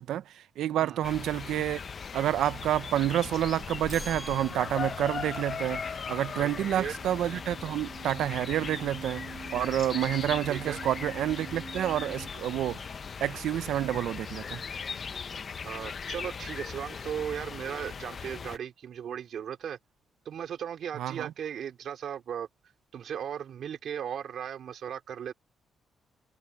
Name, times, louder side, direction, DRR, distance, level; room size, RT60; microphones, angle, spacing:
voice 1, 0.0-1.8 2.1-12.9 13.2-14.6 20.9-21.3, right 12 dB, 85° right, 0.6 m, -29 dB
sound 1, 1.0-18.6, left 6 dB, 35° left, 0.7 m, -39 dB
sound 2, 3.8-12.3, right 6 dB, 40° right, 4.9 m, -48 dB
sound 3, 3.9-5.3, equal, ahead, 0.8 m, -45 dB
voice 2, 10.5-10.8 15.6-19.8 20.3-22.5 22.9-25.3, right 9 dB, 55° right, 3.6 m, -37 dB
cardioid pair, 165°, 0 cm